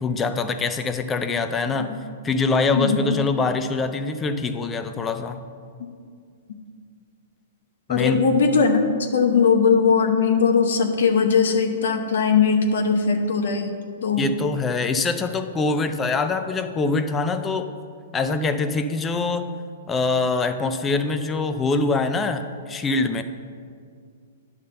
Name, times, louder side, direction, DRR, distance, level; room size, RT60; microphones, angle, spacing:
voice 1, 0.0-1.9 2.2-5.4 7.9-8.3 14.2-17.7 18.1-19.5 19.9-23.2, left 3 dB, 15° left, 8 dB, 0.5 m, -24 dB
voice 2, 2.7-3.2 7.9-8.8 9.1-13.7 14.0-14.3, left 5 dB, 75° left, 4 dB, 0.8 m, -19 dB
9.9 x 3.7 x 6.6 m, 2.2 s
hypercardioid pair, 140°, 0 cm